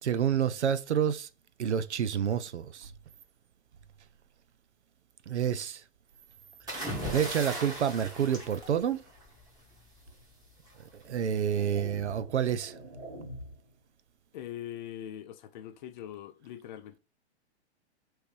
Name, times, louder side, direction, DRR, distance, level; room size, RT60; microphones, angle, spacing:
voice 1, 0.0-1.3 1.6-2.9 5.3-5.8 7.1-9.0 11.0-12.7, right 8 dB, 90° right, 0.5 m, -28 dB
sound 1, 6.7-9.4 10.7-11.0, right 1 dB, 10° right, 1.4 m, -38 dB
sound 2, 10.1-10.2 10.9-13.7, right 1 dB, 70° right, 2.0 m, -45 dB
voice 2, 14.3-17.0, left 11 dB, 45° left, 0.5 m, -42 dB
3.1 x 3.0 x 3.3 m
hypercardioid pair, 120°, 34 cm